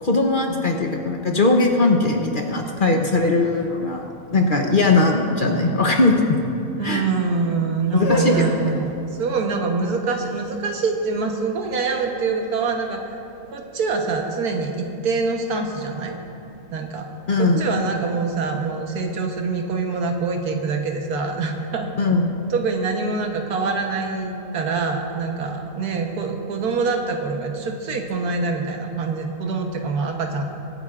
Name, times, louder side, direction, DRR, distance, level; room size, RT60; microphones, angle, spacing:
voice 1, 0.0-6.4 6.8-7.0 7.9-8.7 17.3-17.7 22.0-22.3, left 2 dB, 45° left, 2 dB, 0.8 m, -20 dB
voice 2, 6.8-8.9 9.2-13.1 13.5-16.2 16.7-17.1 17.4-21.9 22.5-30.5, right 4 dB, 85° right, 3 dB, 1.6 m, -25 dB
sound 1, 7.9-13.8, left 2 dB, 75° left, 2.6 m, -32 dB
22.5 x 9.0 x 2.4 m, 2.7 s
omnidirectional pair, 1.6 m